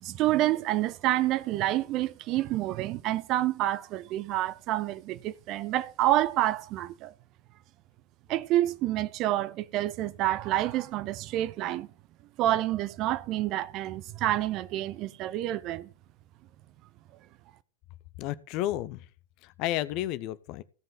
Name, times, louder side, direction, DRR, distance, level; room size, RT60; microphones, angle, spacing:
voice 1, 0.0-7.1 8.3-11.9 12.4-15.9, right 14 dB, 40° right, 0.7 m, -28 dB
voice 2, 18.2-19.0 19.4-20.6, left 14 dB, 40° left, 0.7 m, -32 dB
16.5 x 5.5 x 4.9 m
figure-of-eight pair, 90°, 0 cm